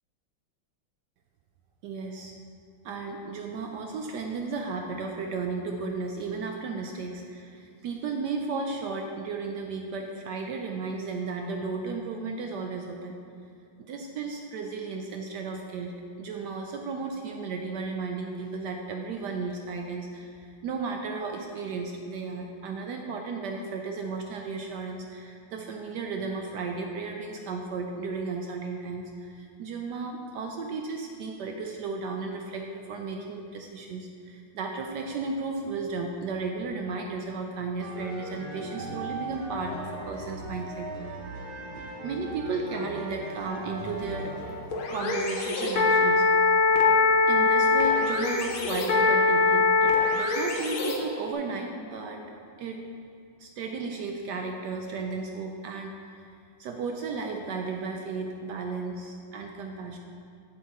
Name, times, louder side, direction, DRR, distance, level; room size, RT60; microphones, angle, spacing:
voice 1, 1.8-2.3 2.8-13.1 13.8-15.9 16.2-40.9 42.0-44.3 44.9-46.3 47.3-52.2 52.6-52.9 53.4-56.3 56.6-60.0, right 4 dB, 75° right, 3 dB, 0.9 m, -34 dB
sound 1, 37.8-44.6, right 1 dB, 50° right, 1.6 m, -38 dB
sound 2, 43.6-51.3, left 3 dB, 70° left, 1.7 m, -23 dB
8.3 x 7.8 x 3.5 m, 2.3 s
omnidirectional pair, 2.3 m